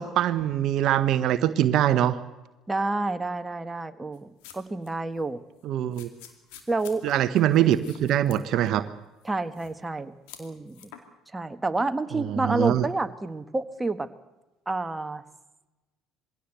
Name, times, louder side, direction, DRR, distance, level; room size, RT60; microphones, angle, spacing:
voice 1, 0.0-2.2 5.6-6.1 7.0-8.9 12.2-12.9, right 11 dB, 60° right, 13 dB, 0.8 m, -23 dB
voice 2, 2.7-5.4 6.7-7.0 9.2-10.1 10.4-10.9 11.3-14.1 14.7-15.2, right 2 dB, 15° right, 9 dB, 1.4 m, -29 dB
sound 1, 4.1-4.9 5.1-5.3 5.9-8.9 9.2-9.9 10.3-11.0, left 9 dB, 75° left, 2.5 m, -48 dB
21.5 x 16.5 x 7.9 m, 1.1 s
hypercardioid pair, 65°, 0 cm